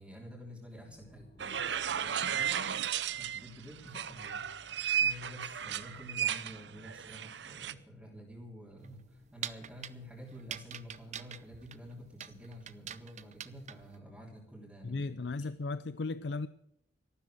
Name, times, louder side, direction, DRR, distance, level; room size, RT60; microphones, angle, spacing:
voice 1, 0.0-2.7 3.1-15.5, equal, 5° right, -6 dB, 3.2 m, -50 dB
sound 1, 0.8-9.1, equal, 40° left, 2.6 m, -62 dB
sound 2, 1.4-3.5 3.9-7.7, right 8 dB, 80° right, 0.7 m, -34 dB
sound 3, 8.8-14.0, right 9 dB, 40° right, 0.7 m, -45 dB
voice 2, 14.8-16.5, left 3 dB, 75° left, 14 dB, 0.5 m, -36 dB
14.0 x 12.5 x 6.3 m, 0.79 s
head